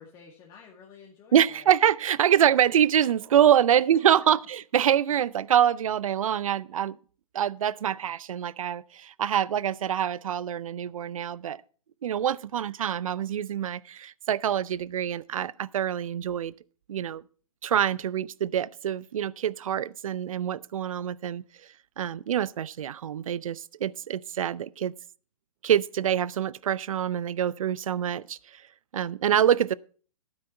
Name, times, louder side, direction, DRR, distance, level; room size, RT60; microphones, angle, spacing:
voice 1, 0.0-1.7 3.7-4.4, left 6 dB, 25° left, 2.2 m, -51 dB
voice 2, 1.3-7.0 7.3-11.6 12.0-16.5 16.9-17.2 17.6-21.4 22.0-24.9 25.6-28.6 28.9-29.7, right 10 dB, 65° right, 0.6 m, -25 dB
12.0 x 9.8 x 4.4 m
hypercardioid pair, 125°, 18 cm